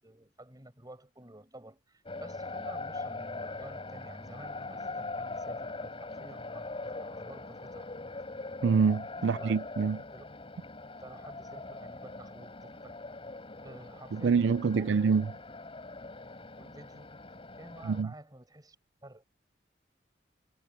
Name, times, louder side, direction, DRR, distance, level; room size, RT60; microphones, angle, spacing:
voice 1, 0.0-7.9 9.2-9.6 10.1-10.2 11.0-13.0 13.6-15.1 16.5-17.1 17.5-18.7 19.0-19.2, right 1 dB, 20° right, 6.8 m, -51 dB
sound 1, 2.1-18.0, left 3 dB, 35° left, 4.0 m, -42 dB
voice 2, 8.6-10.0 14.1-15.3 17.9-18.1, right 5 dB, 90° right, 0.4 m, -26 dB
head